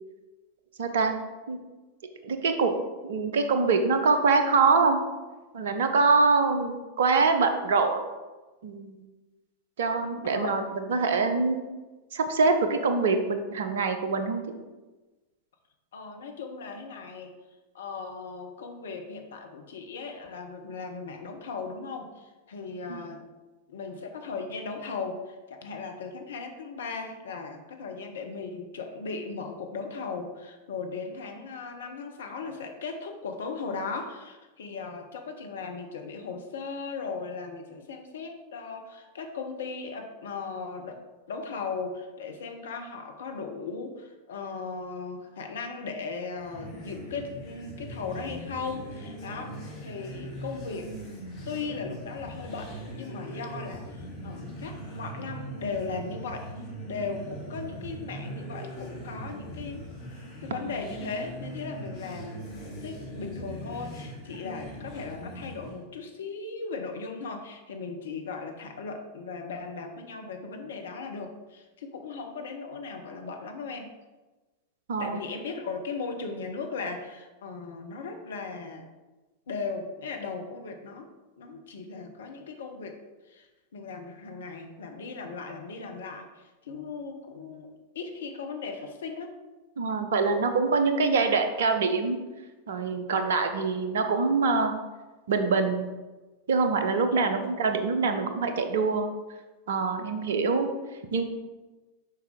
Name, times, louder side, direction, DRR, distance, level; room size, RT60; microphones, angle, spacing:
voice 1, 0.8-1.2 1.5-1.6 2.2-2.7 3.0-5.0 5.5-8.0 8.6-9.0 9.8-11.6 12.1-14.4 22.9-23.0 74.9-75.2 89.8-92.2 92.7-94.7 95.3-95.9 96.5-99.1 99.7-100.7 101.1-101.2, right 4 dB, 60° right, 7 dB, 0.7 m, -24 dB
voice 2, 10.2-10.7 15.9-17.3 17.7-23.2 23.7-41.0 41.3-49.6 49.8-50.9 51.5-56.5 56.9-59.9 60.4-73.9 75.0-78.8 79.5-81.1 81.4-83.0 83.3-83.5 83.7-89.3 97.1-97.4, left 4 dB, 65° left, 4 dB, 0.9 m, -37 dB
sound 1, 46.3-65.8, right 1 dB, 40° left, 1.9 m, -40 dB
6.5 x 5.0 x 3.6 m, 1.2 s
figure-of-eight pair, 90°, 0 cm